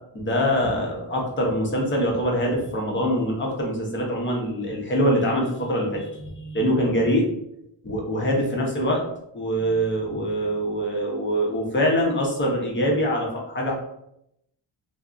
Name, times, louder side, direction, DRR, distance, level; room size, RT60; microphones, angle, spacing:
voice 1, 0.1-7.3 7.8-9.0 9.3-13.7, equal, 25° left, -1 dB, 0.6 m, -24 dB
2.3 x 2.0 x 3.6 m, 0.78 s
wide cardioid pair, 170°, 47 cm